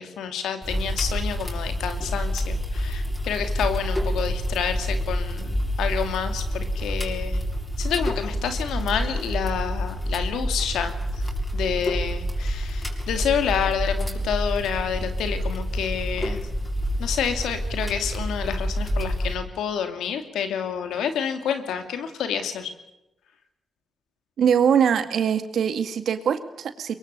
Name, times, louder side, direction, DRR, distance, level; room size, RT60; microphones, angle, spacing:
voice 1, 0.0-7.4 7.8-10.9 11.5-16.4 17.0-22.7, left 8 dB, 90° left, 8 dB, 2.6 m, -28 dB
sound 1, 0.6-19.4, equal, 20° left, 7.0 m, -28 dB
voice 2, 24.4-27.0, right 7 dB, 80° right, 9 dB, 2.1 m, -22 dB
23.0 x 23.0 x 6.8 m, 0.92 s
supercardioid pair, 50°, 0 cm